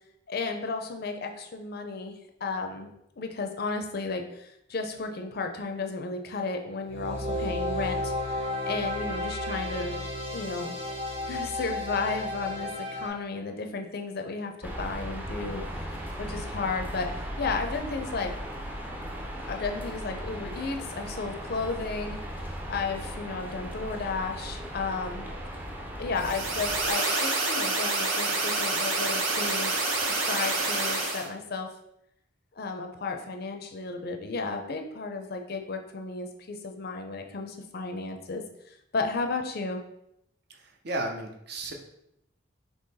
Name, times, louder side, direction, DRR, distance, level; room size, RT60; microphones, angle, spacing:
voice 1, 0.3-2.9 3.2-10.0 10.3-10.7 11.3-18.3 19.5-22.2 22.7-25.2 26.0-31.7 32.6-39.8, left 4 dB, 50° left, 5 dB, 0.5 m, -33 dB
sound 1, 6.9-13.1, left 1 dB, 30° right, 1.0 m, -32 dB
sound 2, 14.6-26.9, equal, 10° right, 0.5 m, -37 dB
sound 3, 26.2-31.3, right 3 dB, 85° right, 0.9 m, -28 dB
voice 2, 40.5-41.7, right 1 dB, 55° right, 3 dB, 0.6 m, -34 dB
3.8 x 2.9 x 4.0 m, 0.79 s
head